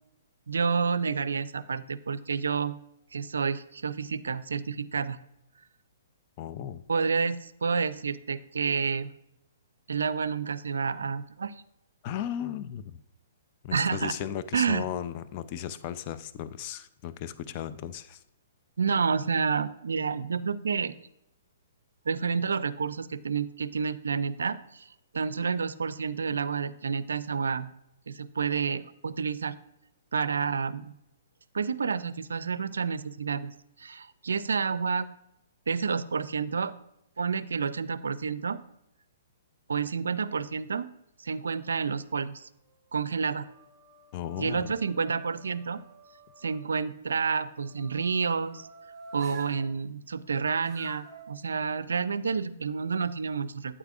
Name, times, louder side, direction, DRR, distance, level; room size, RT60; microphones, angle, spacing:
voice 1, 0.5-2.8 3.1-5.2 6.9-9.1 9.9-11.5 13.7-14.1 14.5-14.8 18.8-20.9 22.1-24.9 25.1-27.7 28.1-29.5 30.1-30.9 31.5-33.5 33.8-35.1 35.7-36.7 37.2-38.6 39.7-40.9 41.2-42.5 42.9-43.5 44.4-45.8 46.4-48.7 49.1-53.8, right 5 dB, 75° right, 16 dB, 0.4 m, -29 dB
voice 2, 6.4-6.8 12.0-13.0 13.6-18.2 44.1-44.7, left 10 dB, 40° left, 12 dB, 0.5 m, -36 dB
sound 1, 41.3-42.1 42.7-46.6 47.5-49.7 50.6-51.3, right 3 dB, 20° right, 2.3 m, -51 dB
8.9 x 8.1 x 2.4 m, 0.84 s
figure-of-eight pair, 125°, 0 cm